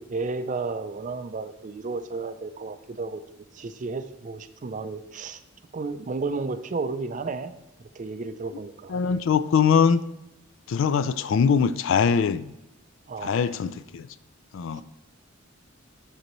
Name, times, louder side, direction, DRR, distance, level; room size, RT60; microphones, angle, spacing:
voice 1, 0.0-3.2 3.5-5.4 5.7-7.5 8.0-9.0 13.1-13.5 14.7-14.8, right 3 dB, 35° right, 10 dB, 0.4 m, -32 dB
voice 2, 8.9-10.0 10.7-12.5 13.2-14.1 14.5-14.8, left 6 dB, 65° left, 15 dB, 0.3 m, -22 dB
11.5 x 4.0 x 3.1 m, 0.90 s
head